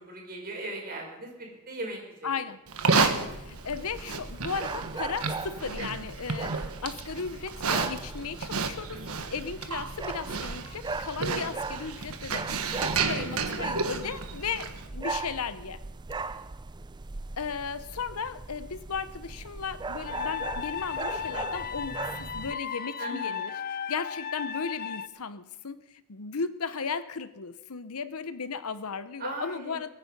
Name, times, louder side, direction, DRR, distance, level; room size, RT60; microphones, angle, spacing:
voice 1, 0.0-2.3 12.8-13.3 16.3-16.4 23.0-23.4 29.2-29.8, right 2 dB, 45° right, 0 dB, 5.3 m, -39 dB
voice 2, 2.2-2.6 2.9-9.0 9.3-15.8 17.4-23.6 23.9-29.9, left 5 dB, 80° left, 13 dB, 0.9 m, -36 dB
Livestock farm animals working animals, 2.7-14.9, right 4 dB, 80° right, 1.4 m, -32 dB
sound 1, 3.0-22.5, right 3 dB, 20° right, 0.4 m, -39 dB
sound 2, 20.1-25.1, left 7 dB, 40° left, 0.6 m, -35 dB
22.5 x 9.5 x 5.4 m, 1.0 s
head